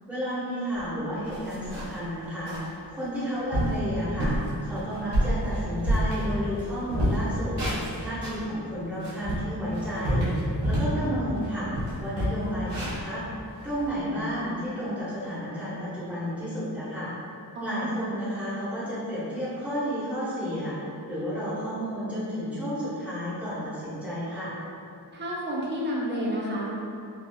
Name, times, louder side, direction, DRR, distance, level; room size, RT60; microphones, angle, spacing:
voice 1, 0.1-7.6 8.0-11.7 12.0-13.2 13.6-17.1 17.6-24.5, equal, 5° right, -12 dB, 1.2 m, -32 dB
sound 1, 0.8-0.9 1.2-2.0 2.5-2.7 3.1-3.2 3.5-3.8 4.2-4.5 4.9-6.6 6.9-8.4 8.9-11.0 11.4-11.5 11.7-13.9, right 1 dB, 90° right, 0.9 m, -28 dB
voice 2, 17.5-18.0 25.1-26.8, equal, 25° right, -5 dB, 0.5 m, -30 dB
3.3 x 2.3 x 2.3 m, 2.6 s
wide cardioid pair, 70°, 41 cm